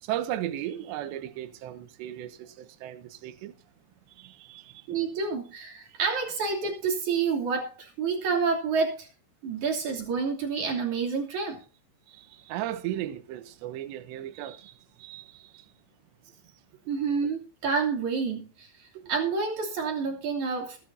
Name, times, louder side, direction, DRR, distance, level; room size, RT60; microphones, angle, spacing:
voice 1, 0.0-3.5 4.2-4.9 12.1-15.7 18.9-19.0, right 12 dB, 75° right, 3.1 m, -36 dB
voice 2, 4.9-9.1 9.4-11.6 16.9-18.7 19.1-20.8, right 5 dB, 45° right, 3.9 m, -28 dB
22.0 x 9.1 x 2.7 m
omnidirectional pair, 5.4 m